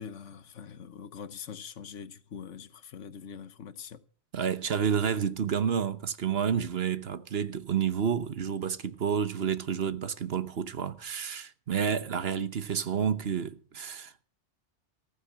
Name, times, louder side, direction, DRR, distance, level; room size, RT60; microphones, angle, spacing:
voice 1, 0.0-4.0, left 7 dB, 80° left, 1.3 m, -43 dB
voice 2, 4.3-14.2, right 7 dB, 55° right, 1.1 m, -30 dB
15.0 x 9.3 x 7.4 m
omnidirectional pair, 1.2 m